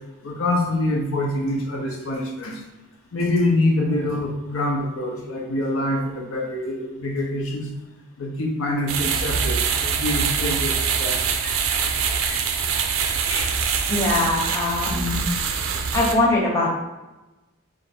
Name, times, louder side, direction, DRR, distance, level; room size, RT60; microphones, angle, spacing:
voice 1, 0.2-2.6 3.1-7.7 8.2-11.6 12.2-12.4 13.1-13.5 14.1-14.2, left 1 dB, 75° left, 0 dB, 0.8 m, -25 dB
sound 1, 8.9-16.1, right 6 dB, 75° right, 0.5 m, -24 dB
voice 2, 13.9-15.3 15.9-16.7, left 2 dB, 15° left, -5 dB, 0.9 m, -22 dB
4.2 x 2.5 x 4.4 m, 1.1 s
head